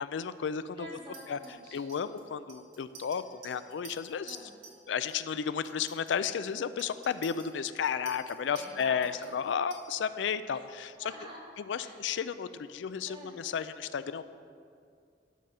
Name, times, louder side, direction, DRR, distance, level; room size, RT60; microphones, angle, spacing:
voice 1, 0.0-0.9 1.3-1.4 1.7-4.5 4.9-11.1 11.6-14.2, left 7 dB, 90° left, 13 dB, 0.4 m, -33 dB
voice 2, 0.8-1.8 4.2-4.5 8.5-9.2 11.0-11.9 13.1-13.4, right 1 dB, 30° right, -5 dB, 2.1 m, -47 dB
Chink clink, 1.1-4.8 5.1-5.4 5.6-10.2, right 5 dB, 70° right, 1.9 m, -52 dB
11.5 x 4.9 x 6.6 m, 2.2 s
head